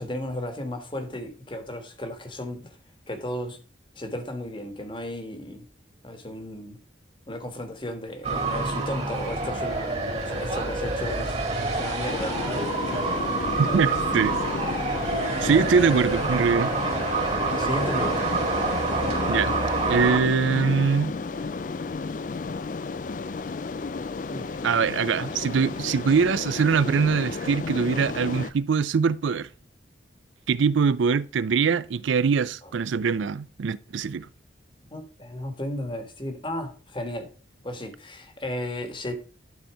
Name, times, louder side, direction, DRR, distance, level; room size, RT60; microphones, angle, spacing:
voice 1, 0.0-2.8 3.1-3.6 3.9-5.7 6.0-6.8 7.3-10.0 10.2-11.4 11.7-13.0 13.6-13.9 14.1-14.2 14.7-15.0 15.5-15.7 17.5-18.3 24.3-24.6 25.6-25.7 32.6-32.7 34.9-37.3 37.6-39.1, left 1 dB, 25° left, 1.4 m, -34 dB
sound 1, 8.2-20.2, right 3 dB, 35° right, 1.9 m, -27 dB
sound 2, 12.1-28.5, left 4 dB, 45° left, 0.4 m, -32 dB
voice 2, 13.6-14.3 15.4-16.7 19.3-21.1 24.6-29.5 30.5-34.3, right 5 dB, 80° right, 0.4 m, -23 dB
12.0 x 4.4 x 4.7 m
head